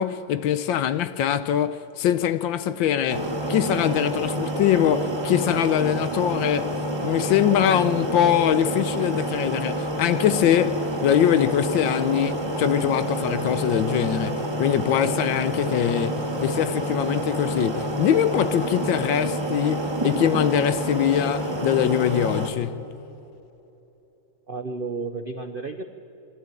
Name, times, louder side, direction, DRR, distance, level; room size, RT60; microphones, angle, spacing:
voice 1, 0.0-6.7 7.0-22.9, left 10 dB, 75° left, 1.4 m, -23 dB
sound 1, 3.1-22.5, right 1 dB, 15° right, 1.5 m, -28 dB
voice 2, 24.5-25.8, right 3 dB, 85° right, 0.4 m, -32 dB
24.0 x 13.0 x 9.0 m
omnidirectional pair, 2.3 m